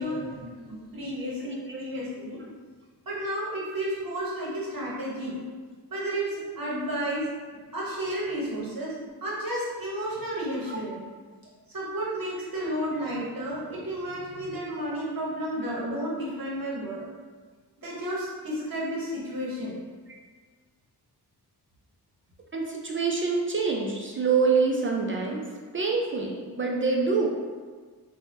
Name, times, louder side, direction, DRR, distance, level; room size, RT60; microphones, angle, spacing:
voice 1, 0.0-2.5 3.1-5.4 5.9-7.3 7.5-8.9 9.2-11.0 11.7-17.0 17.8-19.8, right 1 dB, 55° right, -6 dB, 1.0 m, -32 dB
voice 2, 1.4-1.8 10.7-10.8 22.5-25.4 25.7-27.3, right 4 dB, 30° right, -1 dB, 0.4 m, -26 dB
2.7 x 2.2 x 3.3 m, 1.5 s
cardioid pair, 65°, 40 cm